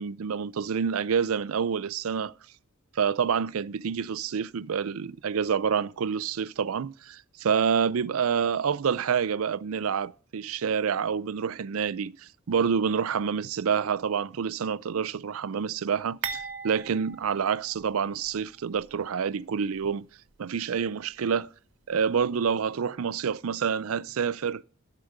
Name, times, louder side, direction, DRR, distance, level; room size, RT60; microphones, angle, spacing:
voice 1, 0.0-2.3 2.9-20.1 20.4-21.5 21.9-24.6, right 6 dB, 80° right, 0.5 m, -28 dB
sound 1, 16.2-18.4 18.7-18.9 19.8-19.9, right 6 dB, 60° right, 1.0 m, -38 dB
11.5 x 5.1 x 7.6 m
head